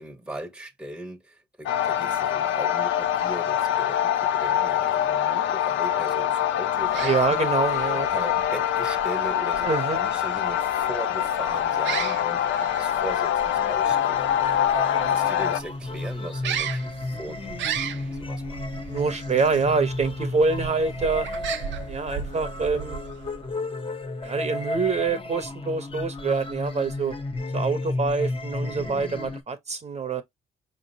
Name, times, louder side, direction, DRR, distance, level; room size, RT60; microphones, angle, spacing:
voice 1, 0.0-7.5 7.9-9.7 9.9-18.8 28.6-29.0, right 1 dB, 5° right, 0.8 m, -39 dB
sound 1, 1.7-15.6, left 10 dB, 70° left, 0.6 m, -24 dB
sound 2, 6.7-23.5, right 9 dB, 65° right, 0.6 m, -37 dB
voice 2, 7.0-8.1 9.6-10.0 14.9-15.2 18.9-21.3 21.9-23.0 24.2-27.1 27.5-30.2, right 4 dB, 35° right, 0.8 m, -26 dB
sound 3, 13.6-29.4, left 2 dB, 25° left, 0.7 m, -33 dB
4.9 x 2.9 x 2.7 m
cardioid pair, 90°, 20 cm